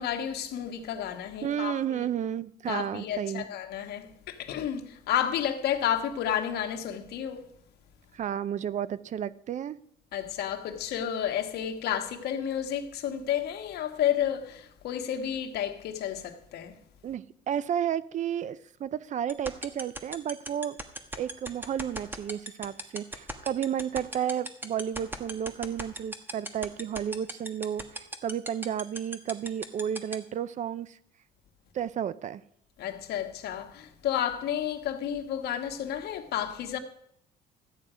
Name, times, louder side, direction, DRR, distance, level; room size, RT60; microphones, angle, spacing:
voice 1, 0.0-2.1 2.7-7.5 10.1-16.8 32.8-36.8, left 10 dB, 75° left, 1.5 m, -31 dB
voice 2, 1.4-3.4 8.1-9.8 17.0-20.8 21.2-31.0 31.7-32.4, right 9 dB, 45° right, 0.6 m, -32 dB
sound 1, 19.3-30.1, right 1 dB, 10° right, 1.4 m, -35 dB
13.5 x 9.2 x 5.0 m
cardioid pair, 110°, 17 cm